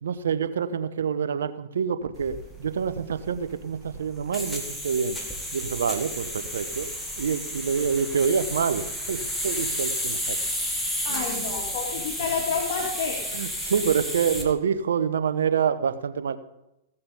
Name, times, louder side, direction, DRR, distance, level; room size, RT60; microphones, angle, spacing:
voice 1, 0.0-5.2 5.5-6.9 7.2-10.4 11.1-11.5 13.3-16.4, right 6 dB, 80° right, 12 dB, 0.9 m, -27 dB
sound 1, 2.1-14.5, equal, 5° left, 2.2 m, -32 dB
voice 2, 11.0-13.2, left 5 dB, 55° left, -1 dB, 2.6 m, -29 dB
16.0 x 7.0 x 5.3 m, 0.90 s
hypercardioid pair, 110°, 0 cm